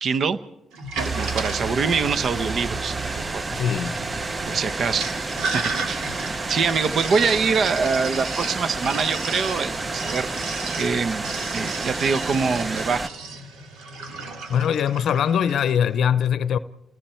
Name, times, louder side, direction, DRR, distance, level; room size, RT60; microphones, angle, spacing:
voice 1, 0.0-0.4 1.1-3.0 3.3-3.6 4.5-5.1 5.5-6.0 6.5-10.3 10.8-11.3 11.5-13.0, right 5 dB, 55° right, 0.9 m, -24 dB
Sink (filling or washing), 0.7-15.8, right 3 dB, 85° right, 2.7 m, -34 dB
sound 1, 1.0-13.1, right 3 dB, 25° right, 0.7 m, -30 dB
voice 2, 3.5-3.9 14.5-16.6, left 8 dB, 65° left, 0.6 m, -22 dB
29.5 x 20.0 x 4.5 m
cardioid pair, 90°, 0 cm